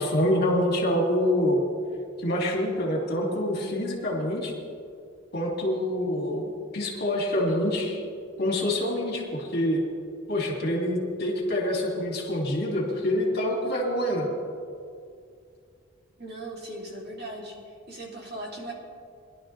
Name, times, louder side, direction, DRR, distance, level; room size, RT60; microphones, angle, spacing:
voice 1, 0.0-1.6 2.2-4.5 5.3-8.0 8.4-9.8 10.3-14.3, left 1 dB, 50° left, -2 dB, 2.4 m, -26 dB
voice 2, 16.2-17.5 17.9-18.7, right 1 dB, 50° right, -3 dB, 2.8 m, -38 dB
21.5 x 11.5 x 3.3 m, 2.3 s
head